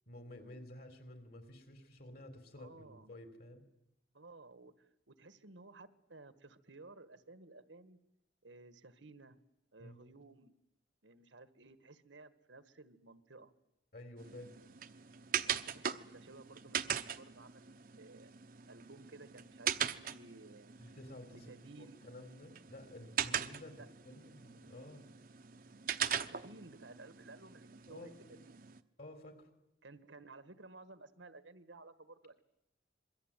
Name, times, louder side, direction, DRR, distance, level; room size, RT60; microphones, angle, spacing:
voice 1, 0.1-3.6 9.8-10.1 13.9-14.5 20.8-25.1 27.9-28.5 29.0-29.5, left 1 dB, 55° left, 7 dB, 4.1 m, -52 dB
voice 2, 2.6-3.1 4.1-8.0 8.4-9.4 9.7-10.5 11.0-13.5 15.4-18.3 18.7-20.7 21.3-22.0 23.8-23.9 26.2-28.7 29.8-32.4, right 3 dB, 80° right, 12 dB, 1.6 m, -56 dB
sound 1, 14.2-28.8, right 8 dB, 50° right, 0.9 m, -41 dB
26.5 x 22.5 x 9.1 m, 0.88 s
head